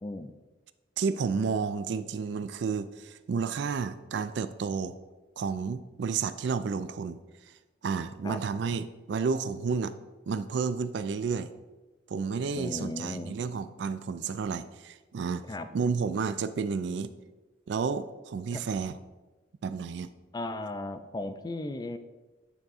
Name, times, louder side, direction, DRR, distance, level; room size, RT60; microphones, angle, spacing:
voice 1, 0.0-0.3 8.2-8.4 12.6-13.4 15.5-15.7 18.5-18.6 20.3-22.0, left 2 dB, 20° left, 10 dB, 0.3 m, -36 dB
voice 2, 1.0-4.9 5.4-7.2 7.8-9.9 10.3-11.5 12.1-15.4 15.7-17.1 17.7-19.0 19.6-20.1, right 5 dB, 65° right, 12 dB, 0.3 m, -31 dB
9.2 x 3.5 x 4.1 m, 1.2 s
head